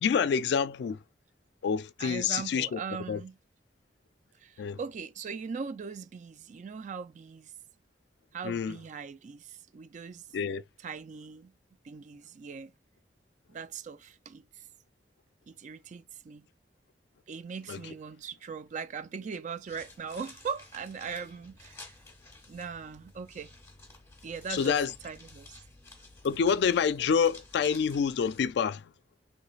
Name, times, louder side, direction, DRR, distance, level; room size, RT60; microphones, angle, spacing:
voice 1, 0.0-1.0 1.6-2.8 3.1-3.2 4.6-4.8 8.4-8.8 10.3-10.6 17.7-17.8 24.5-24.9 26.2-28.8, left 6 dB, 70° left, 0.3 m, -27 dB
voice 2, 2.0-3.4 4.4-7.5 8.3-10.3 10.8-11.5 11.8-12.7 13.5-14.5 15.5-16.5 17.3-22.0 22.5-23.5 24.2-24.8 25.0-25.6, right 5 dB, 45° right, 0.3 m, -40 dB
sound 1, 19.6-28.5, left 2 dB, 15° left, 1.0 m, -52 dB
3.2 x 3.0 x 2.3 m
head